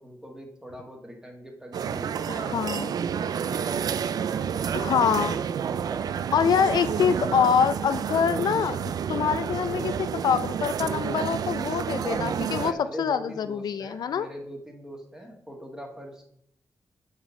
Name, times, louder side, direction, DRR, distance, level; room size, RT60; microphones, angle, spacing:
voice 1, 0.0-2.9 5.7-6.1 6.6-7.0 7.4-7.7 12.0-16.2, equal, 10° right, 2 dB, 1.5 m, -42 dB
sound 1, 1.7-12.7, right 8 dB, 70° right, 0.3 m, -29 dB
voice 2, 2.3-2.9 4.7-5.4 6.3-12.7 13.0-14.3, left 7 dB, 85° left, 12 dB, 0.5 m, -25 dB
7.6 x 4.8 x 5.6 m, 0.70 s
wide cardioid pair, 160°, 7 cm